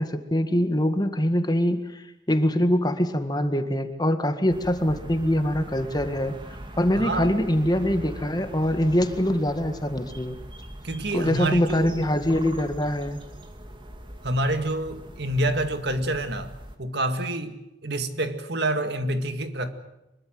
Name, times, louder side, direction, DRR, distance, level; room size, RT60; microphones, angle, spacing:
voice 1, 0.0-6.3 6.8-10.4 11.1-13.2, equal, 20° left, 1.8 m, -24 dB
sound 1, 4.5-16.8, equal, 25° right, 2.4 m, -41 dB
voice 2, 7.0-7.3 10.8-11.9 14.2-16.5 16.8-19.7, right 1 dB, 60° right, 2.1 m, -27 dB
24.0 x 22.5 x 7.9 m
head